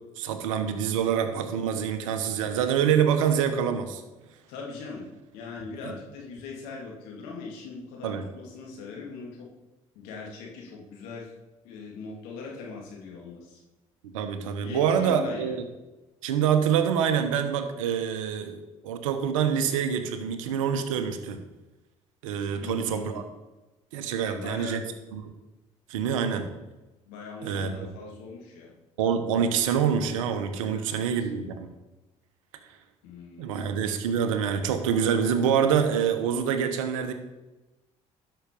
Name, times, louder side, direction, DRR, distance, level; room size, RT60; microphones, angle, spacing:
voice 1, 0.2-4.0 5.8-5.9 8.0-8.3 14.1-15.6 16.2-18.6 18.8-21.4 22.2-23.2 23.9-24.8 25.1-25.3 25.9-26.5 27.4-27.7 29.0-31.7 33.4-37.1, right 8 dB, 85° right, 8 dB, 1.0 m, -26 dB
voice 2, 4.5-9.5 9.9-11.3 11.6-13.6 14.6-15.6 22.5-23.2 24.2-24.9 27.0-28.7 30.6-31.3 33.0-33.8, left 4 dB, 80° left, -2 dB, 2.6 m, -41 dB
12.0 x 5.8 x 5.3 m, 1.1 s
hypercardioid pair, 60°, 16 cm